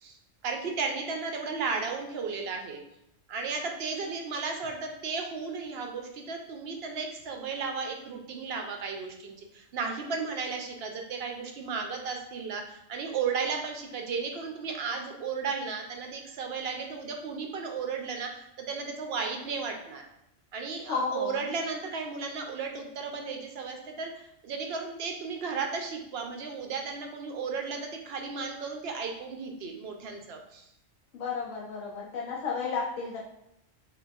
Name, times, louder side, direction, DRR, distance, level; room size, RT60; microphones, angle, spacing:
voice 1, 0.4-2.8 3.3-18.3 18.7-20.0 20.5-24.1 24.4-30.6, right 5 dB, 65° right, 3 dB, 0.7 m, -34 dB
voice 2, 20.9-21.4 31.1-33.2, left 5 dB, 75° left, -3 dB, 0.9 m, -32 dB
3.8 x 3.3 x 2.3 m, 0.81 s
omnidirectional pair, 1.3 m